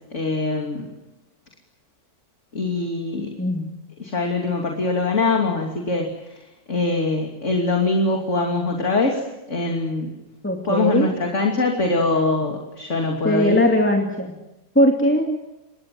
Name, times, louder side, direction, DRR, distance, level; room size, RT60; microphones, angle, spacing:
voice 1, 0.1-0.9 2.5-3.3 4.0-9.2 9.5-10.1 10.7-13.7, left 3 dB, 40° left, 1 dB, 3.2 m, -23 dB
voice 2, 3.4-3.7 10.4-11.1 13.2-14.3 14.7-15.4, equal, 5° left, 2 dB, 2.5 m, -19 dB
27.5 x 23.0 x 7.7 m, 0.94 s
omnidirectional pair, 1.9 m